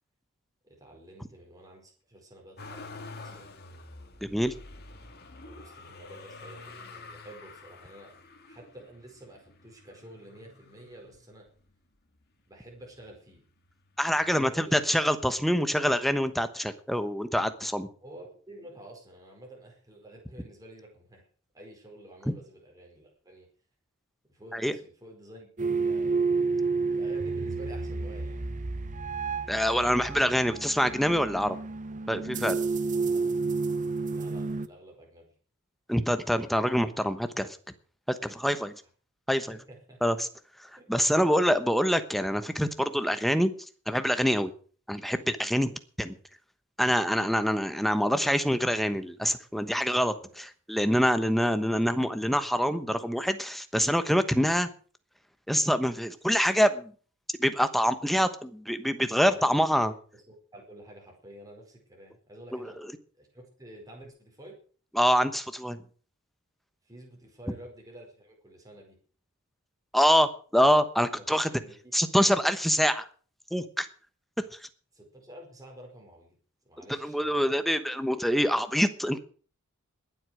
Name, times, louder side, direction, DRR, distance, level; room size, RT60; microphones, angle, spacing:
voice 1, 0.6-3.5 5.4-8.1 8.4-11.5 12.5-13.4 14.1-14.8 18.0-21.3 21.5-23.5 24.3-26.3 26.9-28.5 33.1-33.2 34.1-35.3 39.5-40.0 50.2-50.4 59.1-62.8 63.1-64.6 66.8-69.0 71.1-72.0 74.9-76.4 76.6-77.5, right 1 dB, 15° right, 0 dB, 4.8 m, -50 dB
Motor vehicle (road), 2.6-11.7 12.3-13.1 13.4-14.5 15.5-15.6, left 3 dB, 45° left, 2.3 m, -48 dB
voice 2, 4.2-4.5 14.0-17.9 24.5-24.7 29.5-31.6 32.1-32.6 35.9-37.5 38.1-38.7 39.3-39.6 40.0-40.2 40.9-43.5 43.9-44.5 44.9-45.7 46.0-46.1 46.8-54.7 55.5-56.9 57.4-59.9 62.5-62.6 64.9-65.8 69.9-71.5 71.9-73.0 73.5-73.9 76.9-79.2, equal, ahead, 10 dB, 1.1 m, -25 dB
sound 1, 25.6-34.7, right 4 dB, 35° right, 0.8 m, -30 dB
20.5 x 8.1 x 6.4 m, 0.43 s
head